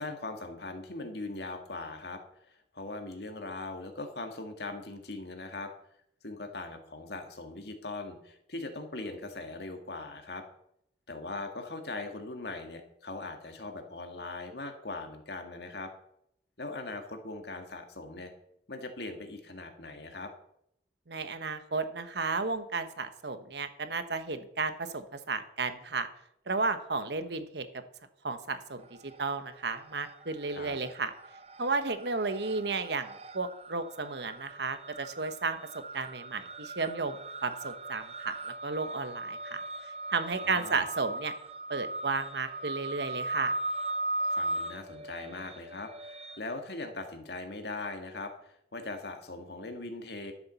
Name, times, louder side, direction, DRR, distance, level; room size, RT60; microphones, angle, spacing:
voice 1, 0.0-5.7 6.2-10.4 11.1-15.9 16.6-18.3 18.7-20.3 30.5-30.8 40.4-40.9 44.3-50.3, left 2 dB, 65° left, 5 dB, 1.9 m, -40 dB
voice 2, 21.1-26.1 26.5-27.7 28.2-28.8 29.2-31.1 31.6-35.6 35.9-38.3 38.6-39.6 40.1-41.3 41.7-43.5, right 4 dB, 70° right, 10 dB, 1.2 m, -33 dB
sound 1, 28.8-29.5 29.8-46.4, right 2 dB, 35° right, 0.6 m, -38 dB
12.5 x 7.2 x 6.9 m, 0.76 s
head